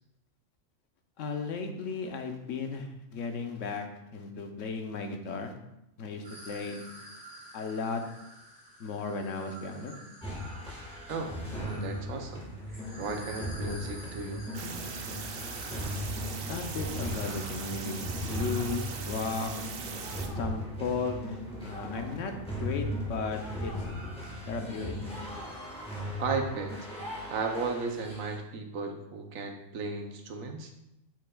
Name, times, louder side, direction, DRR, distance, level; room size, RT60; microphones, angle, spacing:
voice 1, 1.2-3.8 4.1-5.5 6.0-6.9 7.5-8.0 8.8-10.0 16.5-19.5 20.4-22.3 22.6-23.7 24.5-25.0, left 4 dB, 70° left, 5 dB, 1.1 m, -35 dB
sound 1, 6.2-16.0, equal, 15° right, 2.3 m, -49 dB
sound 2, 10.2-28.4, equal, 5° left, 1.4 m, -38 dB
voice 2, 11.1-12.4 13.0-14.8 26.2-26.7 27.3-30.7, right 4 dB, 80° right, 4 dB, 1.2 m, -35 dB
sound 3, 14.5-20.3, right 5 dB, 55° right, 0.8 m, -40 dB
7.0 x 6.5 x 2.3 m, 0.86 s
omnidirectional pair, 1.4 m